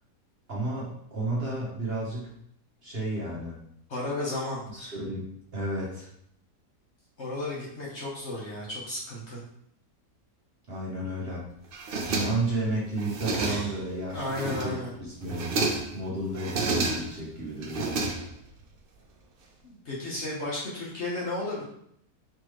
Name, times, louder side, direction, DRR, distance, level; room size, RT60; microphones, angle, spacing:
voice 1, 0.5-2.3 2.8-3.6 4.7-6.1 10.7-11.4 12.1-15.5 15.9-17.9, right 1 dB, 45° right, -5 dB, 1.0 m, -32 dB
voice 2, 3.9-4.9 7.2-9.4 14.1-14.9 19.6-21.6, left 2 dB, 45° left, -4 dB, 1.2 m, -33 dB
sound 1, 11.7-12.6 13.0-13.9 14.2-14.9 15.2-16.0 16.4-17.2 17.6-18.6, right 3 dB, 90° right, 0.5 m, -30 dB
4.6 x 3.4 x 3.1 m, 0.70 s
omnidirectional pair, 1.8 m